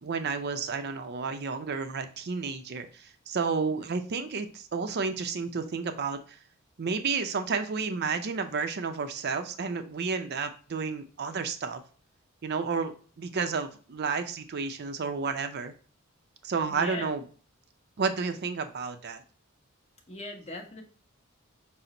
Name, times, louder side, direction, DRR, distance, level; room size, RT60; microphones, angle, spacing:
voice 1, 0.0-6.4 6.8-11.8 12.4-15.7 16.4-17.2 18.0-19.2, right 5 dB, 50° right, 8 dB, 0.5 m, -31 dB
voice 2, 16.7-17.1 20.1-20.8, left 2 dB, 30° left, 1 dB, 0.9 m, -39 dB
5.7 x 2.1 x 3.7 m, 0.41 s
head